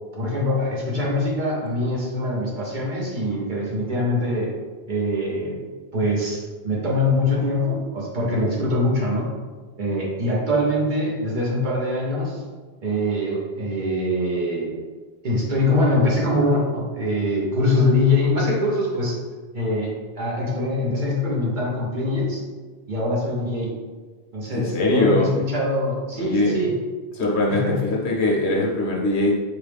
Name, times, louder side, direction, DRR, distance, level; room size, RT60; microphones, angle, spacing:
voice 1, 0.2-4.5 4.9-5.6 5.9-9.3 9.8-12.4 12.8-14.7 15.2-19.2 19.5-22.4 22.9-23.7 24.3-26.8 27.5-27.8, left 1 dB, 50° right, -4 dB, 1.0 m, -23 dB
voice 2, 24.5-25.3 26.2-26.6 27.2-29.4, left 2 dB, 80° left, -3 dB, 1.1 m, -21 dB
4.7 x 2.3 x 3.4 m, 1.4 s
omnidirectional pair, 1.1 m